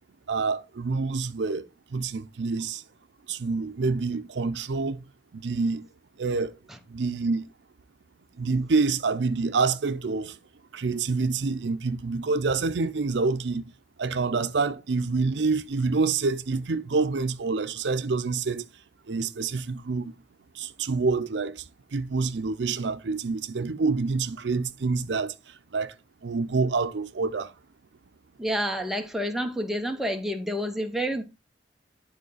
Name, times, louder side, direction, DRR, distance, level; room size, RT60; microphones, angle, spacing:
voice 1, 0.3-2.8 3.3-5.0 5.3-5.8 6.2-6.5 6.9-7.4 8.4-10.4 10.7-13.6 14.0-18.7 19.1-20.1 20.5-21.6 21.9-25.9 26.2-27.5, right 4 dB, 80° right, 0.5 m, -27 dB
voice 2, 28.4-31.2, equal, ahead, 0.8 m, -29 dB
11.0 x 3.8 x 4.0 m
head